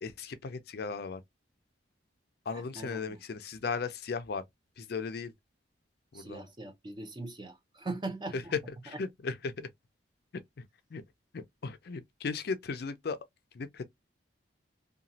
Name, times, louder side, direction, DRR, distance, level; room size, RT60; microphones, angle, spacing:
voice 1, 0.0-1.2 2.5-4.4 4.8-5.3 6.1-6.4 8.3-9.7 10.6-10.7 10.9-11.0 11.3-13.2 13.5-13.8, left 4 dB, 55° left, 0.4 m, -36 dB
voice 2, 2.8-3.2 6.1-8.5, right 2 dB, 25° right, 0.5 m, -40 dB
2.9 x 2.3 x 2.6 m
head